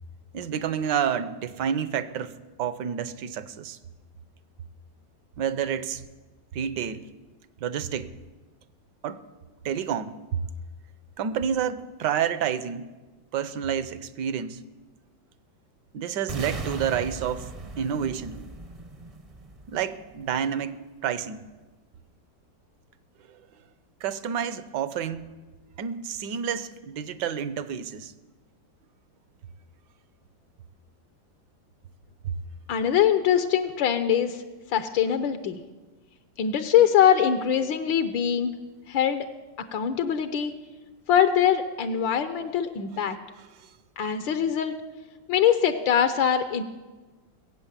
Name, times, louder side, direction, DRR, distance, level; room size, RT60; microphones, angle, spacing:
voice 1, 0.3-3.8 5.4-6.0 6.5-7.1 7.6-8.1 9.0-9.2 9.6-10.4 11.2-12.9 13.3-14.6 15.9-17.5 17.8-18.4 19.7-21.4 23.3-23.4 24.0-25.3 25.8-28.1 32.2-32.4 43.6-43.7, right 8 dB, 70° right, 14 dB, 1.3 m, -29 dB
sound 1, 16.3-20.3, right 3 dB, 35° right, 0.6 m, -38 dB
voice 2, 32.7-34.4 34.7-35.6 36.4-38.5 38.9-39.3 39.7-40.5 41.1-43.2 44.0-44.7 45.3-46.6, left 9 dB, 80° left, 9 dB, 1.6 m, -23 dB
22.0 x 8.5 x 7.4 m, 1.2 s
omnidirectional pair, 2.1 m